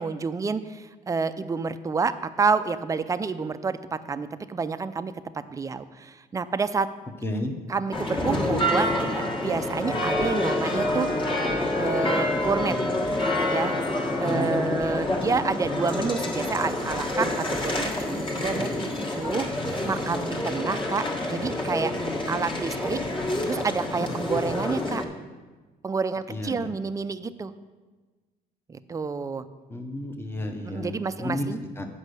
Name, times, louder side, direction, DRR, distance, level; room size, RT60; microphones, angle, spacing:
voice 1, 0.0-6.9 7.7-11.1 11.8-12.7 13.5-13.8 14.2-19.5 19.8-21.9 22.3-23.0 23.5-25.0 25.8-27.5 28.7-29.4 30.6-31.6, right 4 dB, 20° right, 12 dB, 0.4 m, -29 dB
voice 2, 7.2-7.6 14.3-14.8 26.3-26.7 29.7-31.5 31.8-31.9, left 1 dB, 15° left, 4 dB, 0.8 m, -32 dB
sound 1, 7.9-25.0, left 1 dB, 30° left, 1.4 m, -27 dB
8.1 x 5.3 x 6.6 m, 1.3 s
cardioid pair, 110°, 17 cm